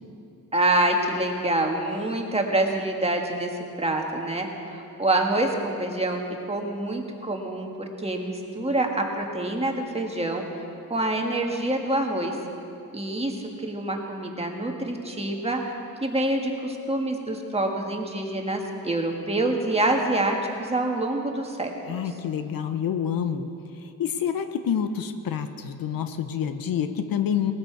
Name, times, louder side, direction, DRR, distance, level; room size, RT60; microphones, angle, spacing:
voice 1, 0.5-3.5 3.8-6.2 6.5-10.4 10.9-12.3 12.9-15.6 16.0-22.0, right 1 dB, 15° right, 1 dB, 1.7 m, -26 dB
voice 2, 21.9-23.5 23.8-27.5, left 8 dB, 80° left, 9 dB, 0.9 m, -28 dB
19.5 x 13.0 x 4.7 m, 2.7 s
cardioid pair, 110°, 34 cm